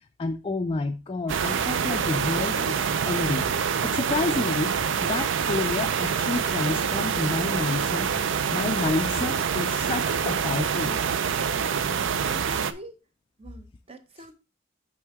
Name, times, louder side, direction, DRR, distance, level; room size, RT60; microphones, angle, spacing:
voice 1, 0.2-2.8 3.1-3.5 3.8-4.7 5.0-8.1 8.5-11.0, left 3 dB, 25° left, 0.4 m, -29 dB
sound 1, 1.3-12.7, right 7 dB, 60° right, 0.4 m, -26 dB
Wind instrument woodwind instrument, 1.3-6.2, right 4 dB, 75° right, 2.2 m, -50 dB
sound 2, 3.3-10.2, left 1 dB, 5° right, 1.0 m, -51 dB
voice 2, 11.9-13.0 13.4-14.3, right 1 dB, 30° right, 0.7 m, -45 dB
6.1 x 5.6 x 3.5 m
head